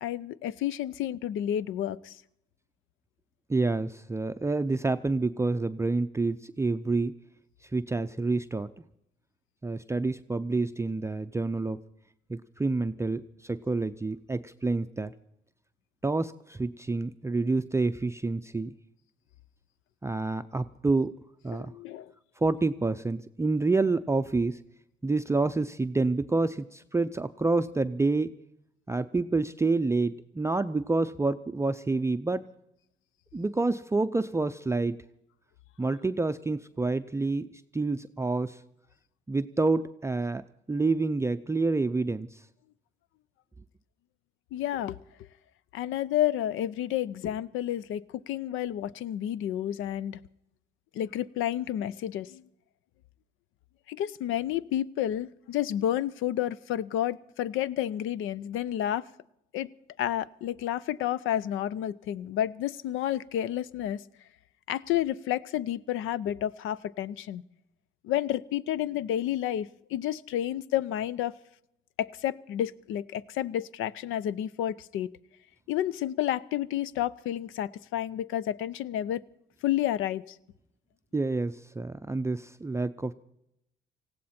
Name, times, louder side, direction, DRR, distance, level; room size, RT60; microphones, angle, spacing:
voice 1, 0.0-2.2 21.5-22.1 44.5-45.0 45.7-50.2 50.9-52.4 53.9-59.0 59.5-59.7 60.0-64.0 64.7-67.4 68.0-71.3 72.0-75.1 75.7-79.2 79.6-80.2, left 12 dB, 90° left, 20 dB, 0.6 m, -30 dB
voice 2, 3.5-7.1 7.6-8.7 9.6-11.8 12.3-15.1 16.0-18.7 20.0-21.1 21.4-21.7 22.4-24.6 25.0-28.3 28.9-32.5 33.3-35.0 35.8-38.6 39.3-42.4 81.1-83.1, right 3 dB, 15° right, 10 dB, 0.5 m, -28 dB
19.0 x 16.0 x 4.3 m, 0.80 s
cardioid pair, 90°, 20 cm